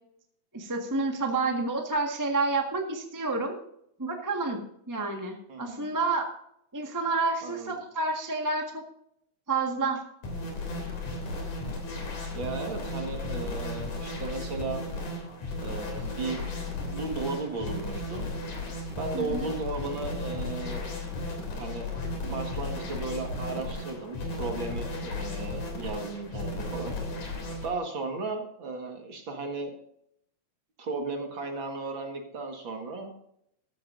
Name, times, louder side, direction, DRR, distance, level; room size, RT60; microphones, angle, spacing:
voice 1, 0.5-3.6 4.0-4.6 4.9-6.3 6.7-8.8 9.5-10.0 19.1-19.5, right 3 dB, 10° right, 2 dB, 0.8 m, -29 dB
voice 2, 5.5-5.9 7.4-7.7 12.3-14.8 15.6-16.4 16.9-18.3 19.0-20.9 21.5-21.9 22.2-26.9 27.6-29.7 30.8-33.1, right 3 dB, 45° right, 3 dB, 2.3 m, -35 dB
sound 1, 10.2-27.7, left 2 dB, 80° left, 4.6 m, -35 dB
14.5 x 12.5 x 2.6 m, 0.72 s
omnidirectional pair, 3.4 m